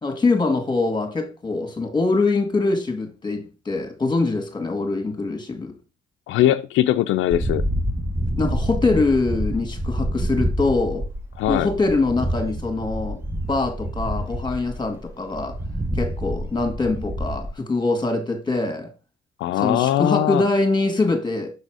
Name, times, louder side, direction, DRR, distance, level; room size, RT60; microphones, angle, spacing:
voice 1, 0.0-5.7 8.4-11.1 11.5-13.2 13.5-15.6 16.0-18.9 19.6-21.5, left 3 dB, 20° left, 1.9 m, -23 dB
voice 2, 6.3-7.6 11.4-11.7 19.4-20.4, left 13 dB, 80° left, 0.4 m, -20 dB
sound 1, 7.3-17.5, equal, 10° right, 0.9 m, -27 dB
6.8 x 4.1 x 4.7 m
cardioid pair, 90°, 20 cm